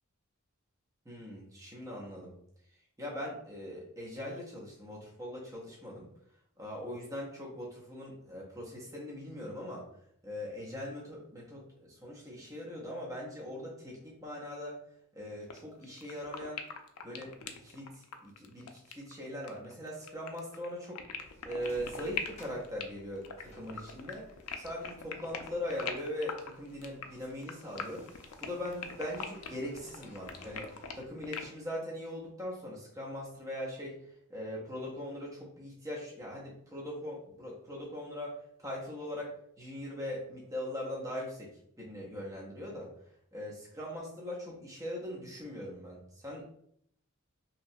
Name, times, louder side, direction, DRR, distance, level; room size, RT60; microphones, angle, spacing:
voice 1, 1.1-2.3 3.0-6.1 6.6-9.8 10.2-14.8 15.1-16.6 17.0-21.0 21.4-24.3 24.6-28.0 28.4-30.7 30.9-34.0 34.3-42.9 43.3-46.4, left 1 dB, 15° right, -4 dB, 0.6 m, -41 dB
sound 1, 15.5-15.6 15.8-31.5, left 6 dB, 75° left, 0.3 m, -41 dB
sound 2, 21.2-30.9, left 1 dB, 30° left, 0.6 m, -56 dB
2.9 x 2.2 x 2.6 m, 0.69 s
head